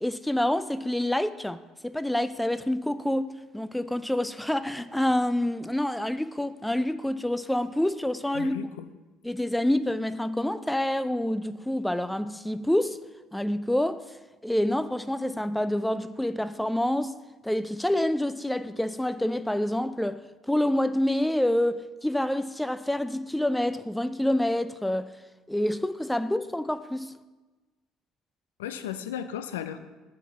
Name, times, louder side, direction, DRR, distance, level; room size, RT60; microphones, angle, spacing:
voice 1, 0.0-8.6 9.2-13.0 13.3-14.0 14.4-17.1 17.4-20.2 20.5-25.1 25.5-27.1, left 1 dB, 5° left, 0.4 m, -27 dB
voice 2, 8.3-8.9 28.6-29.8, left 10 dB, 85° left, 0.5 m, -35 dB
7.8 x 4.8 x 7.1 m
hypercardioid pair, 60°, 0 cm